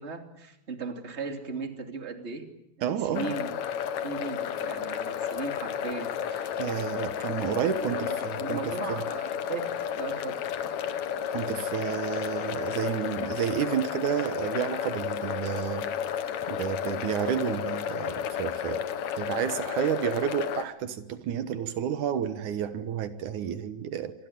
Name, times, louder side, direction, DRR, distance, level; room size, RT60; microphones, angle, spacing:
voice 1, 0.0-2.4 3.0-3.5 4.0-6.5 7.8-9.6 10.0-10.4, right 4 dB, 20° right, 5 dB, 2.8 m, -37 dB
voice 2, 2.8-3.3 6.6-9.0 11.3-15.9 16.5-18.8 19.2-24.1, right 9 dB, 80° right, 11 dB, 2.7 m, -30 dB
sound 1, 3.1-20.6, left 9 dB, 70° left, 2.5 m, -32 dB
27.0 x 22.0 x 9.3 m, 0.84 s
omnidirectional pair, 3.5 m